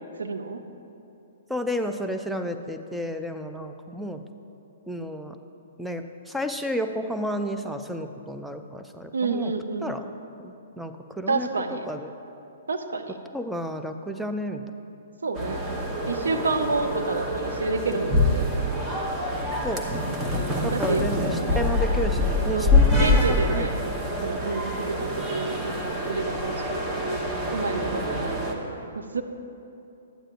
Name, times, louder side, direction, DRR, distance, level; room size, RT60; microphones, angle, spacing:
voice 1, 0.2-0.6 9.1-9.9 11.3-11.9 12.7-13.2 15.2-15.7 16.1-18.7 20.7-21.0 21.5-21.6 22.5-23.7 24.2-26.9 27.5-29.2, right 4 dB, 70° right, 6 dB, 0.6 m, -29 dB
voice 2, 1.5-4.2 4.9-5.4 5.8-9.5 9.8-10.0 10.4-12.1 13.3-14.6 19.6-19.8 20.6-23.1 23.4-23.7, equal, ahead, 5 dB, 0.4 m, -31 dB
sound 1, 15.3-28.5, left 1 dB, 20° right, 1.0 m, -25 dB
12.0 x 8.7 x 2.5 m, 2.8 s
figure-of-eight pair, 120°, 0 cm